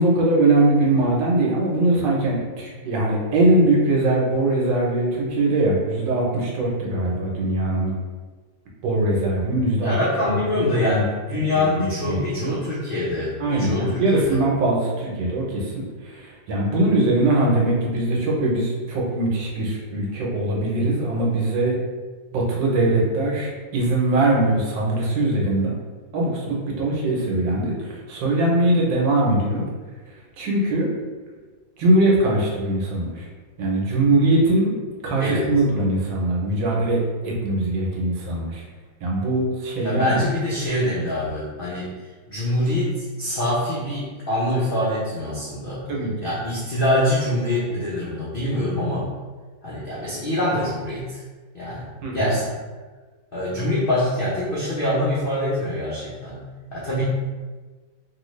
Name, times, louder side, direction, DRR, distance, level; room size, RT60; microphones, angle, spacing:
voice 1, 0.0-7.9 8.8-9.9 10.2-11.1 11.5-12.6 13.4-21.8 22.3-25.8 26.1-29.6 30.4-30.9 31.8-33.3 33.6-34.7 35.0-38.6 39.0-40.2 45.9-46.3 52.0-52.3, right 2 dB, 85° right, -2 dB, 1.5 m, -21 dB
voice 2, 9.8-14.4 35.2-35.5 39.8-41.9 42.3-45.8 46.2-49.1 49.6-51.2 51.5-51.9 52.1-52.5 53.3-56.4 56.7-57.0, left 1 dB, 70° left, -8 dB, 0.5 m, -24 dB
3.1 x 2.7 x 3.1 m, 1.4 s
omnidirectional pair, 2.0 m